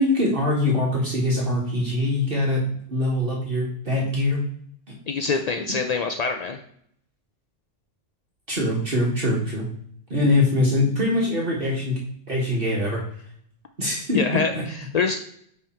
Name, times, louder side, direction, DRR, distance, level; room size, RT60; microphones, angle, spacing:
voice 1, 0.0-2.6 2.9-4.4 8.5-9.7 10.1-12.0 12.3-13.0 13.8-14.2 14.5-14.6, left 1 dB, 50° right, -3 dB, 1.7 m, -23 dB
voice 2, 5.1-6.6 14.1-15.2, left 5 dB, 60° left, 6 dB, 0.4 m, -25 dB
8.9 x 3.5 x 4.4 m, 0.67 s
omnidirectional pair, 1.2 m